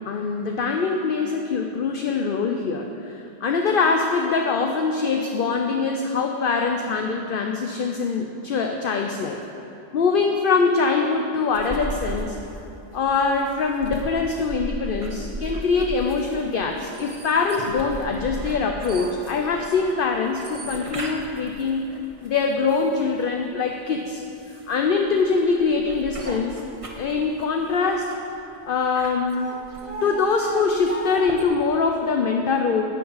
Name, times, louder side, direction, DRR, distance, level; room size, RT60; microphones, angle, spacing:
voice 1, 0.0-9.4 9.9-12.4 12.9-21.8 22.2-24.2 24.7-26.6 27.0-28.1 28.7-29.6 30.0-32.8, left 4 dB, 55° left, 3 dB, 0.8 m, -23 dB
sound 1, 11.5-23.3 23.8-31.4, right 1 dB, 30° right, 1.1 m, -36 dB
12.5 x 6.0 x 8.6 m, 2.7 s
omnidirectional pair, 1.2 m